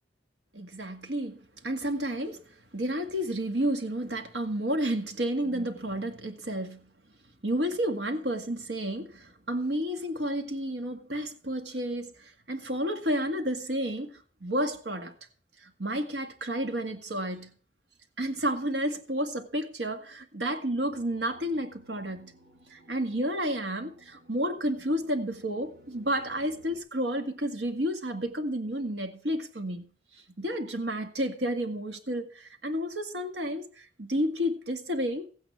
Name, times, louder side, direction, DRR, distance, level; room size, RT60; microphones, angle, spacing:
voice 1, 0.5-2.4 2.7-6.9 7.4-12.1 12.5-15.1 15.6-17.5 18.2-22.3 22.7-29.9 30.4-35.3, equal, 75° right, 2.0 m, -31 dB
sound 1, 20.9-26.8, equal, 55° right, 3.2 m, -57 dB
15.5 x 9.1 x 4.8 m
head